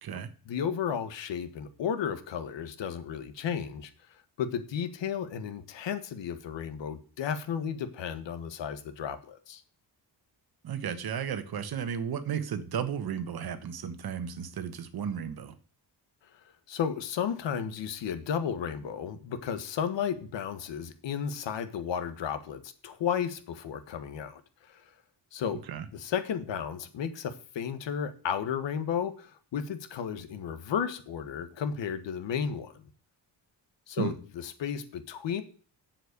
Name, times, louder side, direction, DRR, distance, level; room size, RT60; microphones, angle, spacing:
voice 1, 0.4-3.9 4.4-9.6 16.7-24.4 24.7-24.8 25.3-25.6 25.9-32.7 33.9-35.4, left 8 dB, 80° left, 1.6 m, -33 dB
voice 2, 10.6-15.5 25.7-25.8 34.0-34.1, right 8 dB, 55° right, 1.3 m, -34 dB
8.0 x 7.5 x 8.2 m
wide cardioid pair, 175°, 43 cm